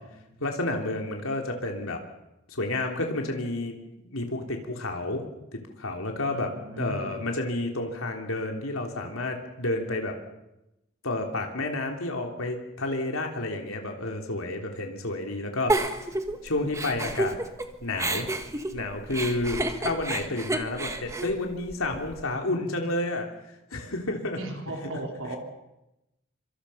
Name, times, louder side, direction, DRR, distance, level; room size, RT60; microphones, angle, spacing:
voice 1, 0.4-2.0 2.5-5.2 5.5-10.1 11.0-15.8 16.4-17.4 17.8-18.3 18.7-23.3 23.7-24.4, left 2 dB, 85° left, 3 dB, 3.3 m, -30 dB
voice 2, 6.3-7.2 24.3-25.4, right 1 dB, 70° right, 1 dB, 4.3 m, -37 dB
Giggle, 15.7-17.7 18.0-22.2, right 2 dB, 15° right, 1.7 m, -30 dB
25.5 x 25.0 x 5.7 m, 0.91 s
head